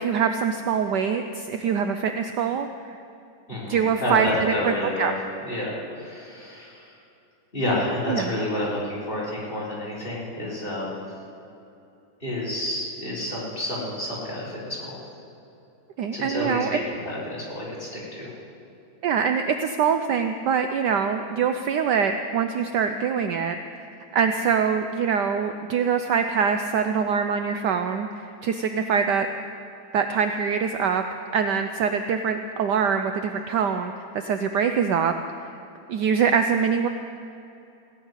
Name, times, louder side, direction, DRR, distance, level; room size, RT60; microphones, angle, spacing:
voice 1, 0.0-3.0 3.7-4.7 5.0-5.1 8.1-8.3 16.0-16.8 19.0-23.9 24.1-29.3 29.9-31.0 31.3-35.1 35.9-36.9, right 6 dB, 70° right, 7 dB, 1.1 m, -24 dB
voice 2, 3.5-5.1 5.4-6.9 7.5-11.0 12.2-15.0 16.1-18.3, left 1 dB, 25° left, -5 dB, 4.2 m, -29 dB
17.0 x 7.4 x 9.6 m, 2.7 s
omnidirectional pair, 2.2 m